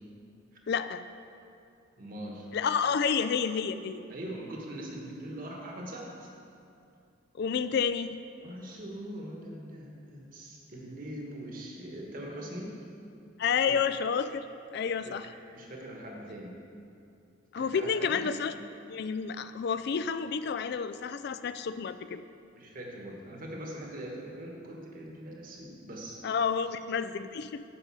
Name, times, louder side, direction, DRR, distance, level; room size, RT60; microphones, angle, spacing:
voice 1, 0.7-1.0 2.5-4.0 7.4-8.2 13.4-14.5 14.7-15.3 17.5-18.5 18.9-22.2 26.2-27.6, left 6 dB, 55° left, 12 dB, 0.3 m, -30 dB
voice 2, 2.0-2.5 4.1-6.3 8.4-12.8 13.7-13.8 15.0-15.1 15.5-16.6 17.6-18.3 22.5-26.2, right 1 dB, 45° right, -1 dB, 1.4 m, -42 dB
9.0 x 5.3 x 6.2 m, 2.5 s
head